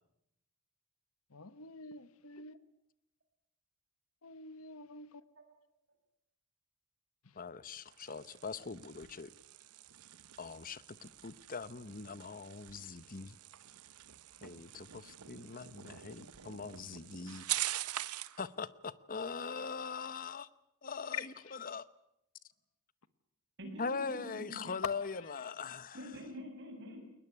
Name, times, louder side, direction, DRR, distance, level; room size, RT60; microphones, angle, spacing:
voice 1, 1.3-2.6 4.2-5.2 7.2-7.3 21.4-21.5 24.6-24.8 25.2-25.3, left 1 dB, 75° left, 1.2 m, -50 dB
voice 2, 7.4-9.3 10.4-13.4 14.4-17.4 18.4-20.5 20.8-21.3 21.6-21.9 23.8-26.0, left 5 dB, 40° left, 0.9 m, -42 dB
sound 1, 7.7-18.4, right 14 dB, 85° right, 0.9 m, -44 dB
voice 3, 23.6-24.7 25.9-27.0, equal, 55° right, 7.3 m, -46 dB
22.0 x 20.0 x 9.8 m
head